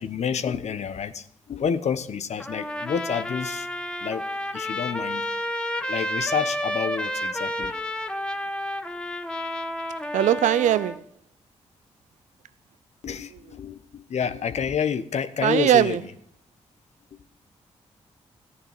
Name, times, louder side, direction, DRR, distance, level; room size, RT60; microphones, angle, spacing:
voice 1, 0.0-3.7 4.0-4.3 4.5-5.3 5.9-7.8 13.0-16.1 17.1-17.2, left 7 dB, 65° left, 1.0 m, -29 dB
Trumpet, 2.4-11.0, left 1 dB, 5° left, 1.2 m, -30 dB
voice 2, 10.1-11.0 15.4-16.0, right 11 dB, 75° right, 0.5 m, -20 dB
14.5 x 10.0 x 7.3 m
supercardioid pair, 50°, 12 cm